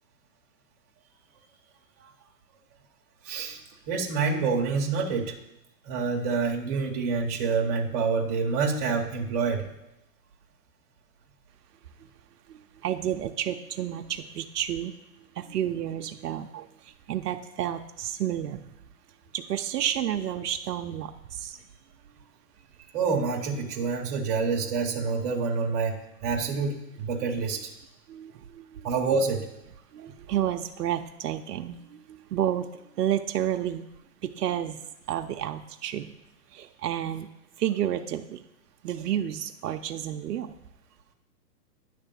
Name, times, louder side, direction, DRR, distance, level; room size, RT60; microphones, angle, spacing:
voice 1, 3.2-3.6 3.9-5.3 5.8-9.7 22.9-27.7 28.8-29.5, right 4 dB, 25° right, 0 dB, 0.9 m, -27 dB
voice 2, 12.5-15.0 15.3-18.7 19.3-21.6 28.1-28.9 29.9-33.9 34.2-34.8 35.1-36.1 36.5-37.3 37.6-38.4 38.8-40.5, right 11 dB, 70° right, 6 dB, 0.7 m, -31 dB
10.0 x 3.4 x 6.8 m, 0.87 s
hypercardioid pair, 160°, 49 cm